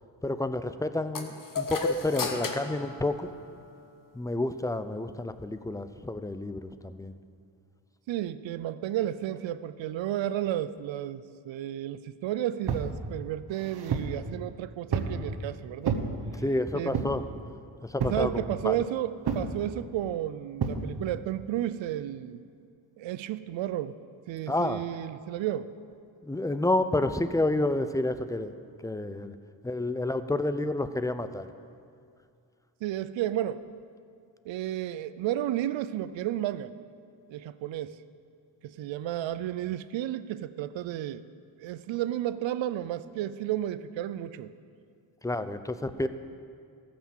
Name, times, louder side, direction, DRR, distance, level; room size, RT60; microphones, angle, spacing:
voice 1, 0.2-3.3 4.1-7.1 16.4-17.2 17.8-18.8 24.5-24.8 26.2-28.5 28.8-29.3 29.6-31.5 45.2-46.1, left 2 dB, 10° left, 11 dB, 0.5 m, -29 dB
sound 1, 1.1-3.8, left 3 dB, 45° left, 1.3 m, -34 dB
voice 2, 8.1-16.0 16.7-17.0 18.1-22.4 23.0-24.0 24.3-25.7 32.8-33.6 34.5-36.7 37.3-38.0 38.6-41.2 41.6-44.5, right 12 dB, 75° right, 14 dB, 0.6 m, -32 dB
sound 2, 12.7-12.9 13.5-14.2 14.9-15.2 15.8-16.1 16.9-17.3 18.0-18.3 19.3-19.5 20.6-20.8, right 6 dB, 55° right, 1.3 m, -30 dB
14.0 x 6.1 x 7.3 m, 2.3 s
cardioid pair, 65°, 46 cm